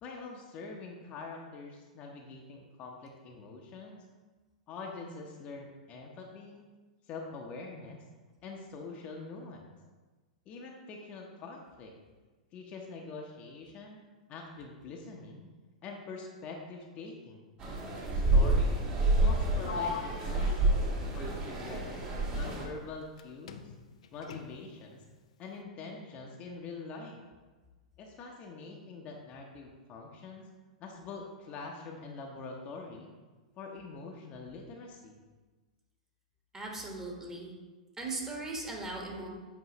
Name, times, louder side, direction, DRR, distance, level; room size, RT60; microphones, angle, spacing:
voice 1, 0.0-4.0 4.7-6.7 7.1-8.0 8.4-9.7 10.5-11.9 12.5-14.0 14.3-15.5 15.8-17.5 18.1-18.9 19.2-23.7 24.1-25.0 25.4-27.2 28.0-30.4 30.8-33.1 33.6-35.2, left 3 dB, 35° left, 0 dB, 0.9 m, -44 dB
sound 1, 17.6-22.6, right 2 dB, 30° right, 1.5 m, -28 dB
Sliding door, 19.6-23.2 23.5-24.8, left 6 dB, 65° left, 0.4 m, -42 dB
voice 2, 36.5-37.5 38.0-39.3, right 2 dB, 15° right, -1 dB, 1.4 m, -38 dB
8.0 x 4.8 x 3.0 m, 1.3 s
figure-of-eight pair, 100°, 4 cm